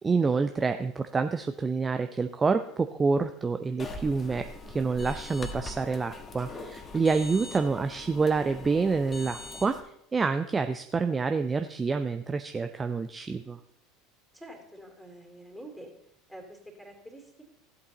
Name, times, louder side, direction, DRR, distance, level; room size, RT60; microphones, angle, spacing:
voice 1, 0.0-9.8 10.1-13.6, right 4 dB, 20° right, 8 dB, 0.5 m, -27 dB
sound 1, 3.8-9.8, left 3 dB, 25° left, 1.4 m, -42 dB
voice 2, 14.3-15.9 16.3-17.4, right 1 dB, ahead, 3 dB, 3.0 m, -46 dB
15.5 x 8.2 x 4.0 m, 0.74 s
figure-of-eight pair, 70°, 0 cm